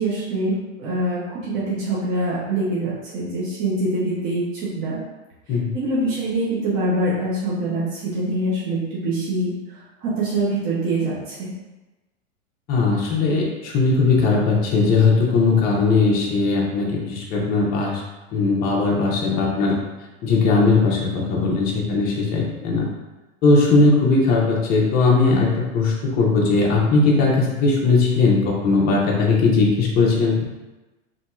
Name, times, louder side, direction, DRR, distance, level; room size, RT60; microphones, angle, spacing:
voice 1, 0.0-4.4 4.8-5.0 5.7-11.5, right 1 dB, 30° right, -7 dB, 0.7 m, -24 dB
voice 2, 12.7-18.0 18.3-19.8 20.2-22.9 23.4-30.4, left 3 dB, 25° left, -3 dB, 0.6 m, -19 dB
2.8 x 2.7 x 2.3 m, 1.1 s
hypercardioid pair, 125°, 40 cm